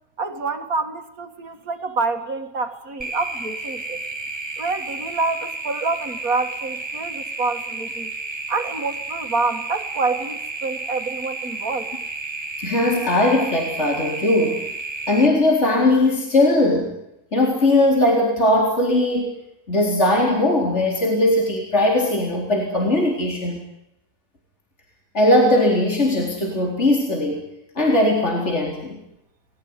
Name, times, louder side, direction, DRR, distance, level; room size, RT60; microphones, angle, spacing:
voice 1, 0.2-4.0 4.6-8.1 8.5-11.9, right 3 dB, 70° right, 6 dB, 2.4 m, -27 dB
sound 1, 3.0-15.3, right 2 dB, 20° right, 1.6 m, -32 dB
voice 2, 12.6-14.6 15.1-16.9 17.3-19.3 19.7-23.6 25.1-27.4 27.8-29.0, left 1 dB, 45° left, -1 dB, 4.5 m, -19 dB
29.5 x 20.0 x 9.6 m, 0.87 s
omnidirectional pair, 1.6 m